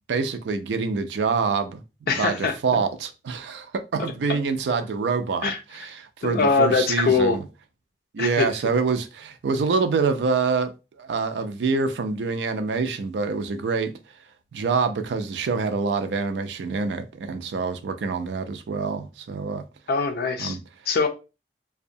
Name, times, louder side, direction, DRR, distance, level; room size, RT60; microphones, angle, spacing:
voice 1, 0.1-1.8 2.2-7.4 8.1-10.7 11.0-13.9 14.5-19.6 20.4-20.6, right 4 dB, 75° right, 0.4 m, -26 dB
voice 2, 2.1-2.8 5.4-5.6 6.2-7.4 8.2-8.5 19.9-20.6 20.9-21.1, left 4 dB, 60° left, 0.4 m, -22 dB
2.6 x 2.1 x 2.6 m
head